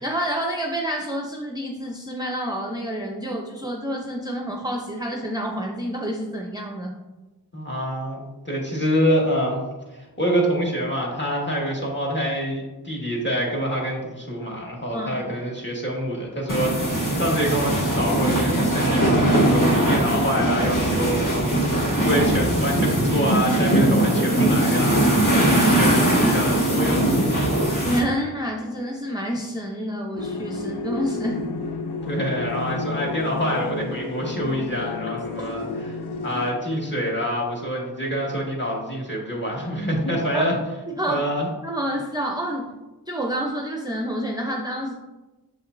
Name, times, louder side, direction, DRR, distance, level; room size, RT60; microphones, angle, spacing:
voice 1, 0.0-7.0 14.9-15.2 26.2-26.4 27.8-31.4 40.3-40.4 41.0-41.3 41.6-42.7 43.1-44.9, equal, 10° right, 0 dB, 0.6 m, -28 dB
voice 2, 7.5-9.6 9.9-27.6 32.1-36.0 36.2-40.5 41.1-41.5, equal, 30° left, -3 dB, 1.7 m, -26 dB
sound 1, 16.5-28.0, right 1 dB, 50° left, 1.9 m, -20 dB
sound 2, 30.2-36.5, left 3 dB, 80° left, 0.7 m, -31 dB
6.6 x 5.8 x 2.6 m, 1.1 s
wide cardioid pair, 65°, 39 cm